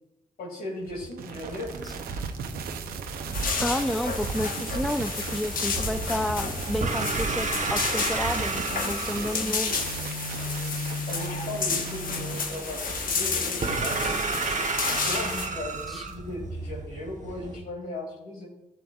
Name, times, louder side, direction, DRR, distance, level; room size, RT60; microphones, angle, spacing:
voice 1, 0.4-1.8 11.1-18.5, left 2 dB, 80° left, 0 dB, 2.4 m, -37 dB
sound 1, 0.9-16.1, right 6 dB, 80° right, 0.7 m, -37 dB
sound 2, 1.4-17.6, right 3 dB, 55° right, 1.1 m, -34 dB
sound 3, 3.3-15.5, left 4 dB, 65° left, 1.1 m, -31 dB
voice 2, 3.6-9.8 15.9-16.0, left 1 dB, ahead, 10 dB, 0.5 m, -30 dB
13.0 x 6.9 x 2.4 m, 1.0 s
supercardioid pair, 45°, 15 cm